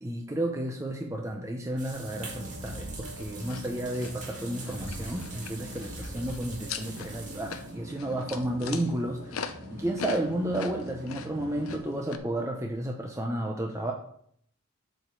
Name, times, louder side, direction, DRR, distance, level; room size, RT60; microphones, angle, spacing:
voice 1, 0.0-13.9, right 1 dB, 15° right, 1 dB, 0.8 m, -32 dB
sound 1, 1.8-7.8, right 2 dB, 35° right, 2.0 m, -42 dB
sound 2, 2.0-11.8, right 1 dB, 60° right, 1.9 m, -44 dB
sound 3, 3.2-12.2, left 6 dB, 75° left, 0.7 m, -42 dB
7.8 x 5.0 x 6.5 m, 0.65 s
head